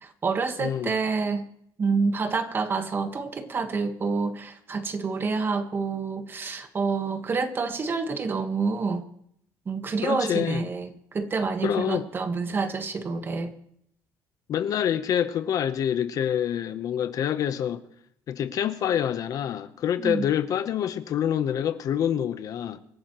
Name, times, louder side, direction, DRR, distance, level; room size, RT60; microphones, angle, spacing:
voice 1, 0.0-1.4 1.8-9.1 9.7-13.5 20.0-20.3, right 4 dB, 30° right, 1.3 m, -28 dB
voice 2, 0.6-1.0 10.0-10.6 11.6-12.0 14.5-17.8 18.3-22.8, left 9 dB, 50° left, 0.9 m, -26 dB
26.0 x 11.5 x 3.1 m
cardioid pair, 135°, 8 cm